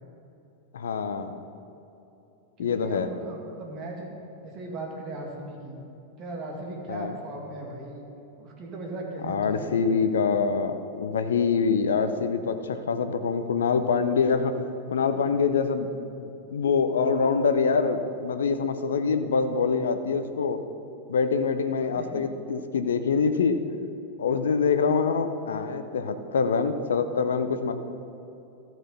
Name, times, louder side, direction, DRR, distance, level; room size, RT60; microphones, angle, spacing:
voice 1, 0.7-1.4 2.6-3.1 6.9-7.1 9.3-14.6 14.9-15.9 16.2-20.6 21.1-23.6 24.2-27.7, left 5 dB, 65° left, 9 dB, 0.6 m, -25 dB
voice 2, 2.6-4.1 4.4-5.8 6.2-8.0 8.4-9.8 21.9-22.3, right 2 dB, 35° right, 0 dB, 2.1 m, -38 dB
14.0 x 6.1 x 5.5 m, 2.9 s
figure-of-eight pair, 90°, 0 cm